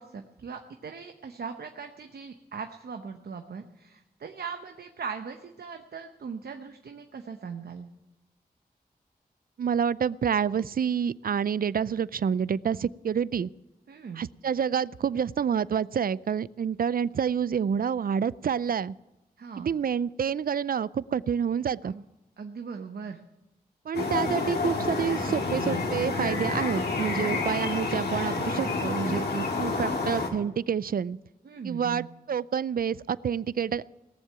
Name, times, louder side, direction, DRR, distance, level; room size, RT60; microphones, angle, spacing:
voice 1, 0.0-7.9 13.9-14.2 19.4-19.7 21.8-22.0 22.4-23.2 31.4-32.1, right 5 dB, 80° right, 5 dB, 0.9 m, -39 dB
voice 2, 9.6-13.5 14.2-18.9 19.6-21.9 23.9-31.2 31.6-33.8, right 7 dB, 65° right, 20 dB, 0.4 m, -28 dB
sound 1, 23.9-30.3, left 3 dB, 85° left, 2.0 m, -29 dB
18.0 x 7.4 x 9.5 m, 0.96 s
cardioid pair, 40°, 16 cm